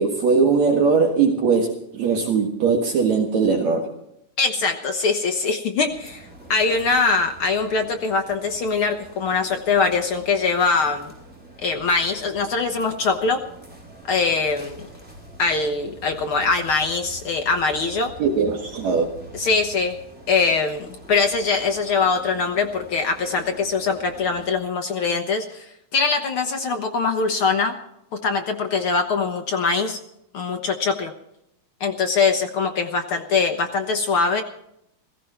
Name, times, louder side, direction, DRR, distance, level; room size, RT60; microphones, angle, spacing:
voice 1, 0.0-3.9 18.2-19.0, right 5 dB, 60° right, 2 dB, 2.8 m, -20 dB
voice 2, 4.4-11.1 11.6-13.4 14.0-14.8 15.4-18.1 19.3-20.0 20.3-27.8 28.1-30.0 30.3-31.1 31.8-34.4, left 4 dB, 60° left, 5 dB, 1.4 m, -22 dB
sound 1, 5.9-24.5, right 1 dB, 5° right, 5.4 m, -45 dB
16.5 x 16.0 x 4.4 m, 0.79 s
omnidirectional pair, 3.7 m